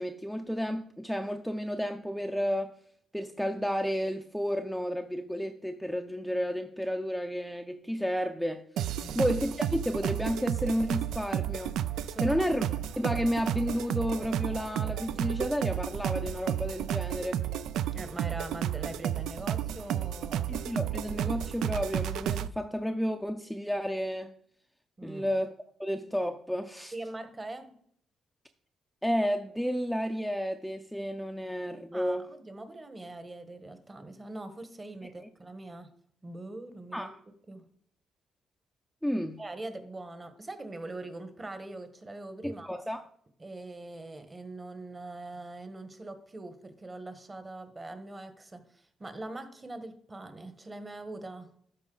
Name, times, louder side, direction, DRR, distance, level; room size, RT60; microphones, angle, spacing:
voice 1, 0.0-2.8 3.1-11.8 12.2-12.6 13.0-17.4 20.5-24.3 25.0-25.5 25.8-26.9 29.0-32.3 35.2-35.3 36.9-37.2 39.0-39.4 42.4-43.1, equal, ahead, 0.5 m, -31 dB
sound 1, 8.8-22.5, right 10 dB, 80° right, 0.3 m, -32 dB
voice 2, 12.1-12.8 17.9-20.5 25.0-25.3 26.9-27.8 31.9-35.9 36.2-37.1 37.5-37.6 39.4-42.7 43.4-51.5, right 2 dB, 25° right, 1.1 m, -42 dB
12.5 x 4.1 x 3.9 m
cardioid pair, 90°, 0 cm